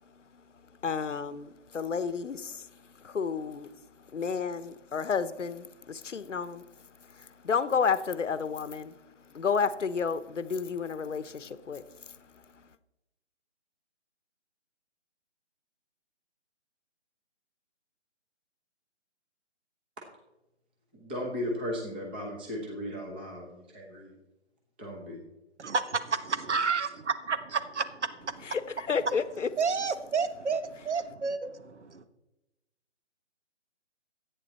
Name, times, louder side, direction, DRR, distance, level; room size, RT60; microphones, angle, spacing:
voice 1, 0.0-12.7 28.4-29.5, left 6 dB, 80° left, 1.1 m, -32 dB
voice 2, 20.9-24.1 24.8-25.2, left 1 dB, 10° right, 1.0 m, -36 dB
voice 3, 25.6-26.9 27.3-28.6 29.6-32.0, right 5 dB, 70° right, 1.4 m, -30 dB
13.5 x 9.2 x 4.2 m
hypercardioid pair, 170°, 36 cm